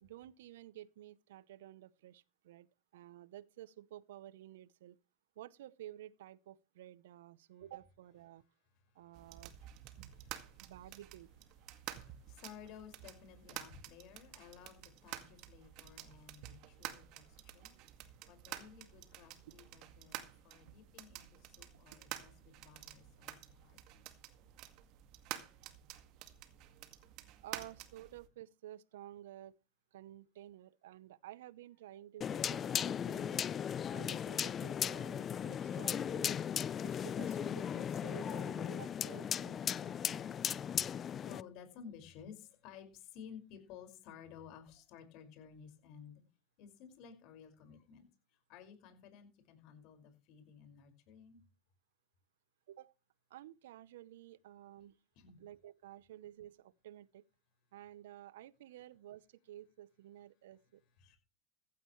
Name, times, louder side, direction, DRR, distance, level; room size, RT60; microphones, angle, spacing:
voice 1, 0.0-2.7 2.9-5.0 5.4-8.4 8.9-9.5 10.0-10.1 10.6-11.3 27.4-29.6 29.9-33.5 33.9-36.4 36.8-40.3 52.7-52.9 53.3-55.0 55.4-57.2 57.7-60.8, right 13 dB, 80° right, 0.8 m, -53 dB
sound 1, 9.1-28.3, right 13 dB, 55° right, 2.0 m, -50 dB
voice 2, 10.1-10.6 11.8-17.7 18.0-20.2 20.4-24.2 40.6-46.2 46.6-48.0 48.5-51.4 55.2-55.4 61.0-61.2, left 7 dB, 60° left, 5.5 m, -55 dB
sound 2, 32.2-41.4, left 8 dB, 35° left, 0.6 m, -37 dB
15.5 x 13.0 x 3.2 m
hypercardioid pair, 95°, 0 cm